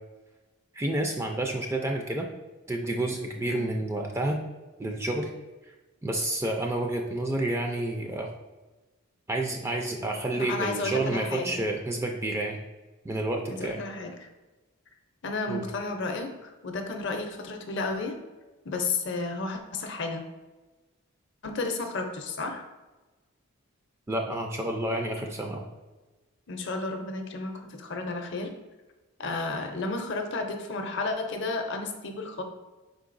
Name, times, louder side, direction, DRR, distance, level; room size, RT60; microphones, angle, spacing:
voice 1, 0.7-2.3 2.7-4.4 4.8-5.3 6.0-8.3 9.3-12.6 13.0-13.8 15.5-15.6 24.1-25.6, right 1 dB, 10° right, 2 dB, 0.3 m, -29 dB
voice 2, 3.4-3.7 10.3-11.6 13.5-14.3 15.2-18.2 18.6-20.2 21.4-22.6 26.5-28.5 29.2-32.4, left 3 dB, 55° left, 5 dB, 0.5 m, -32 dB
5.2 x 3.8 x 2.5 m, 1.2 s
head